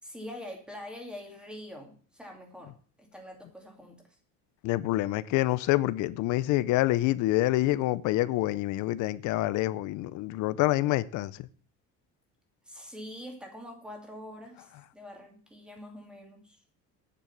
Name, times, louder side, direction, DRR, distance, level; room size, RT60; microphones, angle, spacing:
voice 1, 0.0-2.7 3.0-4.2 12.7-16.6, left 1 dB, 5° right, 2.4 m, -44 dB
voice 2, 4.6-11.3, left 17 dB, 60° left, 0.6 m, -27 dB
9.4 x 7.0 x 7.1 m
cardioid pair, 165°, 33 cm